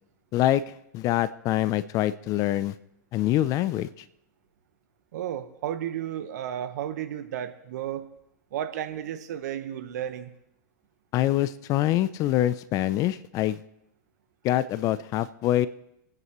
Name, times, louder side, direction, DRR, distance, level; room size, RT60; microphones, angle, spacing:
voice 1, 0.3-0.6 0.9-2.7 3.1-3.9 11.1-13.6 14.4-15.7, left 13 dB, 35° left, 16 dB, 0.5 m, -25 dB
voice 2, 5.1-8.0 8.5-10.3, right 10 dB, 70° right, 9 dB, 1.2 m, -33 dB
28.5 x 9.6 x 3.1 m, 0.81 s
hypercardioid pair, 125°, 10 cm